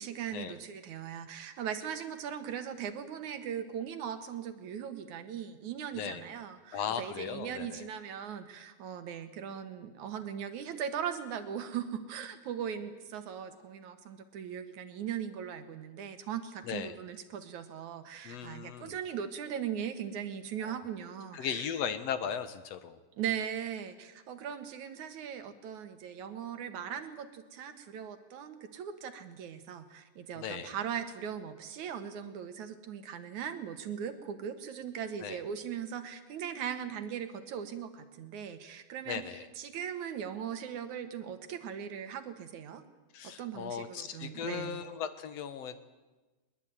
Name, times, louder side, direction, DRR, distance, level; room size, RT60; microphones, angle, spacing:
voice 1, 0.0-21.7 23.2-42.8 43.2-44.8, right 8 dB, 80° right, 9 dB, 3.1 m, -39 dB
voice 2, 6.7-7.8 16.6-17.0 18.2-19.0 20.6-20.7 21.3-23.0 30.4-30.8 35.2-35.4 39.1-39.5 43.1-45.8, left 8 dB, 65° left, 11 dB, 2.4 m, -37 dB
21.5 x 21.5 x 9.3 m, 1.2 s
omnidirectional pair, 3.3 m